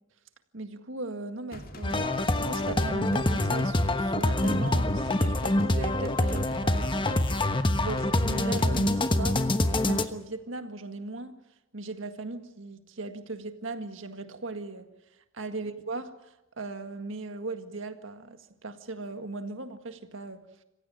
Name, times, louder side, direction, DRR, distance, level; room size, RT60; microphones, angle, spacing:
voice 1, 0.5-2.1 2.4-7.3 7.8-11.3 11.7-14.9 15.3-20.5, right 3 dB, 65° right, 1.8 m, -38 dB
sound 1, 1.5-8.9, left 1 dB, 45° left, 2.2 m, -43 dB
sound 2, 1.8-10.1, left 1 dB, 25° left, 1.1 m, -26 dB
27.0 x 16.0 x 9.1 m
head